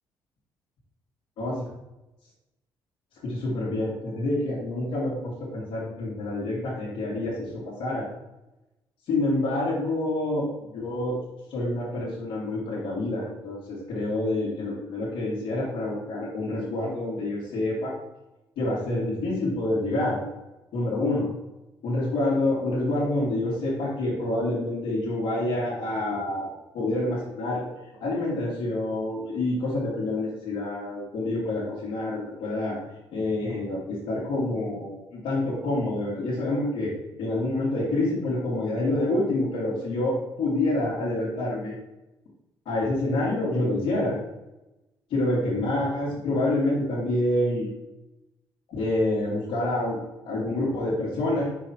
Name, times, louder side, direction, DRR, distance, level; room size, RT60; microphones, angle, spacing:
voice 1, 1.4-1.7 3.2-8.1 9.1-10.5 10.7-11.2 11.5-17.9 18.6-20.2 20.7-21.3 21.8-26.5 26.7-27.6 28.0-32.8 33.1-36.9 37.2-41.7 42.7-44.2 45.1-47.7 48.7-50.0 50.2-51.5, left 2 dB, 80° left, -9 dB, 2.2 m, -27 dB
5.5 x 5.1 x 4.4 m, 0.97 s
cardioid pair, 80°, 9 cm